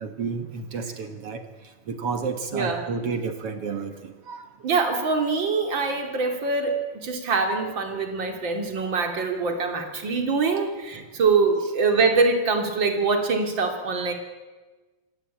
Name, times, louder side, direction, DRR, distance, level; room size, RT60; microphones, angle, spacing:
voice 1, 0.0-1.4 1.9-4.5 10.9-11.1, right 5 dB, 55° right, 7 dB, 1.8 m, -31 dB
voice 2, 2.5-2.9 4.6-14.1, right 4 dB, 35° right, 4 dB, 2.8 m, -24 dB
26.0 x 17.5 x 8.7 m, 1.3 s
omnidirectional pair, 4.3 m